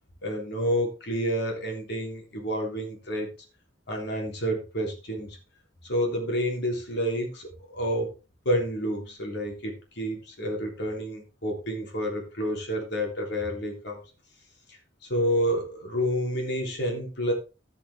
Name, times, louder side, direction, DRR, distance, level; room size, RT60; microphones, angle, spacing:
voice 1, 0.2-3.3 3.9-5.4 5.8-8.1 8.4-14.0 15.1-17.3, equal, 65° left, 1 dB, 3.3 m, -29 dB
16.0 x 5.9 x 3.6 m, 0.31 s
head